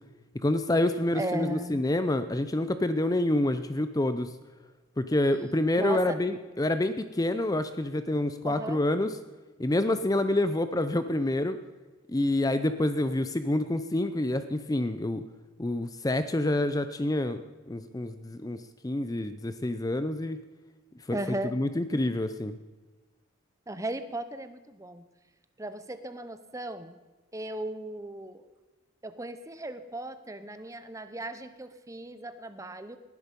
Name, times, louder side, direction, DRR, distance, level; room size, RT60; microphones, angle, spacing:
voice 1, 0.4-4.3 5.0-9.1 9.6-11.6 12.1-15.2 15.6-17.4 17.7-18.6 18.8-20.4 21.1-21.2 21.5-22.5, left 1 dB, 20° left, 11 dB, 0.5 m, -27 dB
voice 2, 1.1-1.9 5.8-6.2 8.4-8.8 21.1-21.5 23.7-25.1 25.6-26.9 27.3-28.4 29.0-33.0, right 1 dB, 15° right, 11 dB, 0.8 m, -36 dB
19.0 x 11.0 x 5.3 m, 1.2 s
head